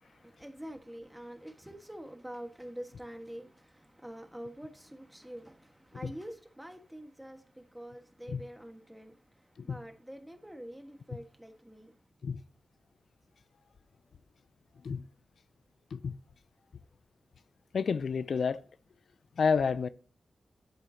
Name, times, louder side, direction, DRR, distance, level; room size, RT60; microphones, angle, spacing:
voice 1, 0.0-12.0, equal, 5° right, 1.5 m, -46 dB
voice 2, 17.7-18.6 19.4-19.9, left 5 dB, 75° left, 0.4 m, -29 dB
10.5 x 8.6 x 2.8 m
cardioid pair, 65°, 0 cm